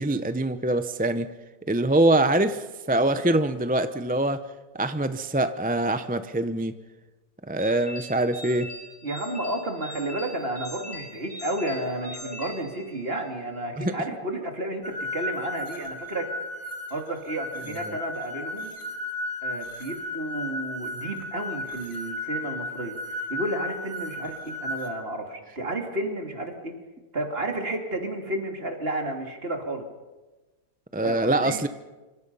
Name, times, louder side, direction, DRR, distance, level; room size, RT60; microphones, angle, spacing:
voice 1, 0.0-1.3 1.7-4.4 4.7-6.7 7.5-8.7 13.8-13.9 30.9-31.7, right 1 dB, 10° right, 10 dB, 0.5 m, -24 dB
sound 1, 7.6-13.3, left 2 dB, 80° left, 7.7 m, -40 dB
voice 2, 9.0-16.3 16.9-18.7 19.4-23.0 23.3-26.7 27.1-29.8 31.0-31.6, right 1 dB, 40° right, 3 dB, 3.0 m, -32 dB
sound 2, 14.8-24.9, left 1 dB, 40° left, 3.4 m, -34 dB
26.0 x 25.5 x 5.6 m, 1.2 s
omnidirectional pair, 1.6 m